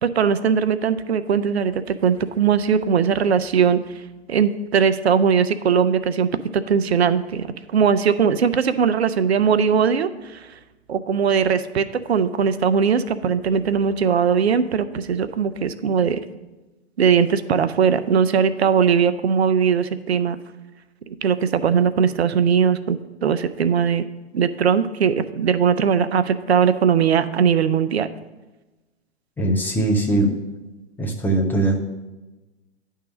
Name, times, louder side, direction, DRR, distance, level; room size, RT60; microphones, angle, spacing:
voice 1, 0.0-3.8 4.3-10.5 10.9-16.2 17.0-20.4 21.1-24.1 24.3-28.1, right 7 dB, 70° right, 12 dB, 0.6 m, -20 dB
voice 2, 29.4-30.3 31.0-31.8, right 2 dB, 5° left, 1 dB, 0.4 m, -20 dB
10.0 x 3.7 x 6.2 m, 1.1 s
figure-of-eight pair, 110°, 33 cm